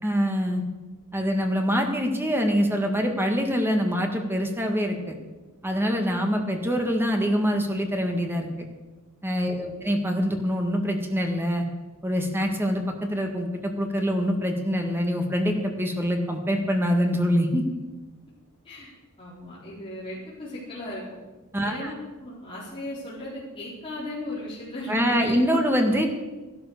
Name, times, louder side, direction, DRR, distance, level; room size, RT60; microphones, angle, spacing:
voice 1, 0.0-0.6 1.1-5.1 5.6-8.7 9.2-11.6 12.0-17.6 21.5-21.9 24.9-26.1, equal, 10° right, 3 dB, 1.7 m, -25 dB
voice 2, 19.2-21.0 21.5-21.9 22.2-25.6, left 1 dB, 25° left, -8 dB, 4.4 m, -37 dB
14.5 x 11.5 x 6.6 m, 1.2 s
head